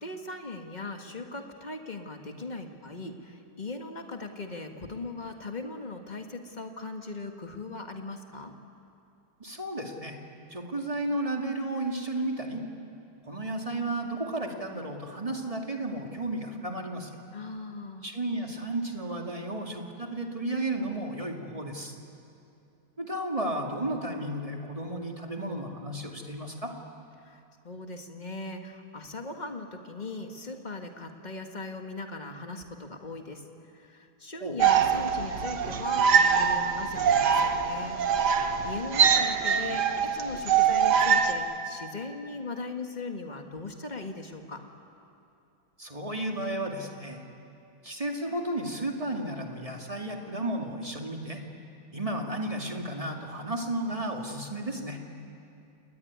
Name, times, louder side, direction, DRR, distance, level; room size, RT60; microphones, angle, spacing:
voice 1, 0.0-8.5 17.3-18.1 27.2-33.4 33.7-44.6, left 3 dB, 25° left, 4 dB, 2.0 m, -39 dB
voice 2, 9.4-10.2 10.5-12.6 13.3-17.1 18.0-21.9 23.0-26.7 34.4-34.6 45.8-47.2 47.8-51.4 51.9-55.0, right 1 dB, 20° right, 1 dB, 2.4 m, -33 dB
sound 1, 34.6-41.3, right 7 dB, 80° right, 1.8 m, -24 dB
29.5 x 19.5 x 9.6 m, 2.7 s
omnidirectional pair, 1.7 m